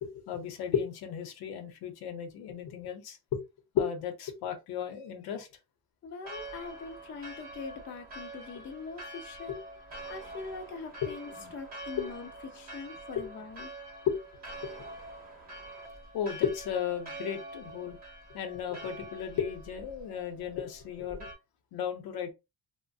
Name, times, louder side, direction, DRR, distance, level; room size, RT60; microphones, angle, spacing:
voice 1, 0.0-3.4 3.7-5.5 9.5-9.6 11.0-11.1 12.0-12.1 13.2-13.3 14.1-14.2 14.6-14.9 16.1-18.0 18.3-21.3 21.7-22.3, left 8 dB, 75° left, 0.8 m, -34 dB
voice 2, 6.0-9.6 10.1-13.8, left 4 dB, 30° left, 0.5 m, -43 dB
Church bell, 6.2-21.3, right 2 dB, 25° right, 0.9 m, -45 dB
3.0 x 2.1 x 2.6 m
cardioid pair, 160°, 37 cm